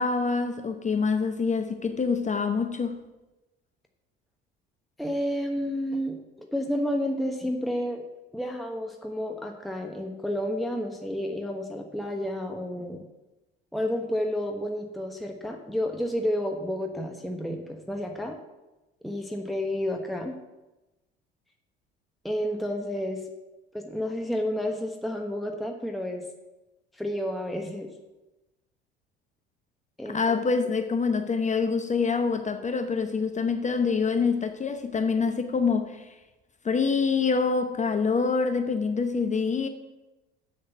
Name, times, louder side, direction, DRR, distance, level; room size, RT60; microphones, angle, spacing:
voice 1, 0.0-3.0 30.1-36.2 36.6-39.7, left 5 dB, 25° left, 0.8 m, -26 dB
voice 2, 5.0-8.0 8.3-13.0 13.7-18.4 19.0-20.3 22.2-23.2 23.7-26.2 26.9-27.9 30.0-30.4, equal, ahead, 1.1 m, -30 dB
7.6 x 6.6 x 6.8 m
figure-of-eight pair, 60°, 30 cm